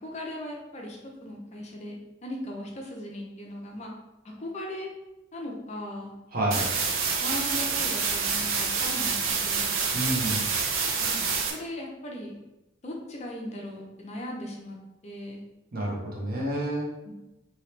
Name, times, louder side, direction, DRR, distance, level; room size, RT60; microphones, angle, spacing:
voice 1, 0.0-3.9 4.2-4.9 5.3-6.1 6.4-6.6 7.2-9.7 11.0-12.4 12.8-15.4 17.0-17.1, left 1 dB, 35° left, -1 dB, 0.5 m, -38 dB
voice 2, 6.3-6.7 9.9-10.4 15.7-16.9, right 1 dB, 50° right, -3 dB, 0.9 m, -29 dB
sound 1, 6.5-11.5, right 5 dB, 80° right, 0.5 m, -27 dB
2.8 x 2.8 x 3.2 m, 0.98 s
head